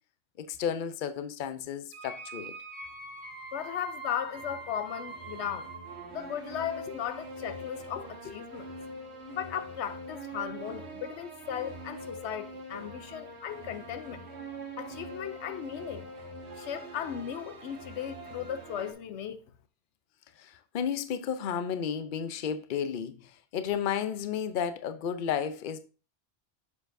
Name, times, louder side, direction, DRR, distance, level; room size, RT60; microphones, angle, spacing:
voice 1, 0.4-2.5 20.4-25.8, left 8 dB, 55° left, 0.7 m, -33 dB
sound 1, 1.9-18.9, right 2 dB, 75° right, 1.6 m, -43 dB
voice 2, 3.5-5.7 6.1-8.7 9.3-14.2 14.8-16.1 16.6-19.4, left 9 dB, 85° left, 0.9 m, -36 dB
7.2 x 6.8 x 2.6 m
omnidirectional pair, 1.1 m